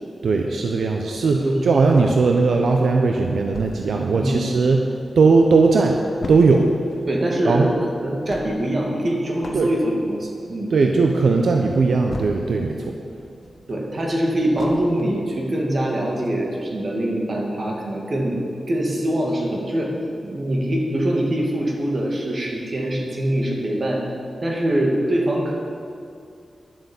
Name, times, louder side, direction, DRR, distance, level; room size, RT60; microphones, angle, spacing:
voice 1, 0.2-4.8 5.2-6.0 6.3-6.7 7.4-7.7 9.5-9.7 10.7-13.0, right 4 dB, 80° right, 2 dB, 0.7 m, -18 dB
sound 1, 3.5-5.1 5.5-5.6 5.7-12.8 13.1-15.3 15.7-15.8 16.2-16.3, left 3 dB, 60° left, 1.1 m, -38 dB
voice 2, 7.1-7.7 8.0-10.7 13.7-18.3 18.7-19.9 20.2-24.0 24.4-25.5, right 1 dB, 45° right, -1 dB, 2.3 m, -23 dB
11.0 x 7.8 x 7.1 m, 2.5 s
wide cardioid pair, 110°, 0 cm